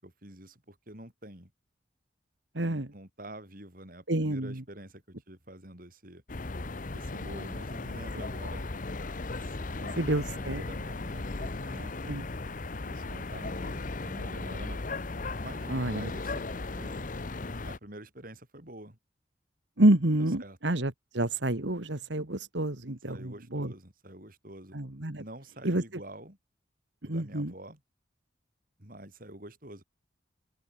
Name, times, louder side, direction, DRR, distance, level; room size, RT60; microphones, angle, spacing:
voice 1, 0.0-1.5 2.5-6.2 6.9-8.7 9.4-12.2 12.9-14.8 15.4-17.1 17.6-19.0 20.4-20.6 23.1-24.8 25.2-26.4 27.0-27.8 28.8-29.8, right 1 dB, 50° right, 6.8 m, -47 dB
voice 2, 2.5-2.9 4.1-4.6 10.0-10.6 12.1-12.2 15.7-16.1 19.8-23.7 24.7-25.2 25.6-25.8 27.1-27.5, right 1 dB, 75° right, 2.2 m, -28 dB
sound 1, 6.3-17.8, left 3 dB, 45° left, 0.9 m, -36 dB
open air
head